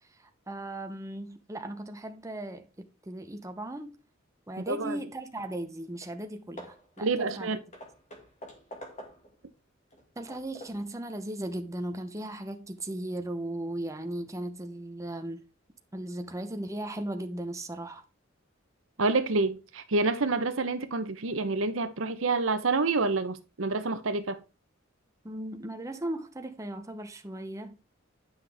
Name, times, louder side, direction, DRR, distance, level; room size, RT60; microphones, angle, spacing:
voice 1, 0.2-4.0 4.5-7.6 10.2-15.4 15.9-18.0 25.2-27.8, right 1 dB, 15° right, 0.8 m, -37 dB
voice 2, 4.7-5.0 7.0-7.6 19.0-24.4, right 3 dB, 70° right, 0.9 m, -28 dB
Hammer / Wood, 5.6-5.7 6.0-6.2 6.6-9.4 9.9-10.9, equal, 35° left, 2.0 m, -47 dB
9.6 x 5.8 x 3.4 m
head